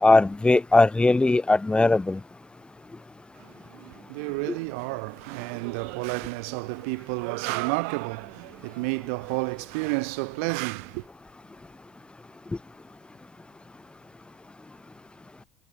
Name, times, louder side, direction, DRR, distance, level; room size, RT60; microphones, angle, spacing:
voice 1, 0.0-2.2, left 2 dB, 15° left, 1.6 m, -19 dB
voice 2, 3.4-11.1, right 31 dB, 75° right, 2.9 m, -31 dB
hypercardioid pair, 75°, 8 cm